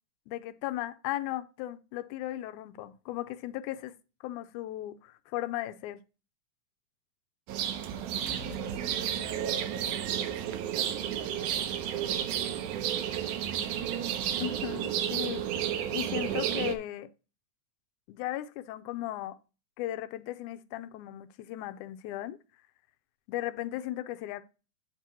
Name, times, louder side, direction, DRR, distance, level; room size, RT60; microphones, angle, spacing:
voice 1, 0.3-3.9 4.2-6.0 14.4-17.1 18.1-19.4 19.8-22.4 23.3-24.4, left 14 dB, 85° left, 2.0 m, -36 dB
sound 1, 7.5-16.8, right 10 dB, 90° right, 2.2 m, -32 dB
voice 2, 8.2-13.9, equal, 55° right, 0.9 m, -49 dB
8.1 x 2.9 x 6.0 m
omnidirectional pair, 3.5 m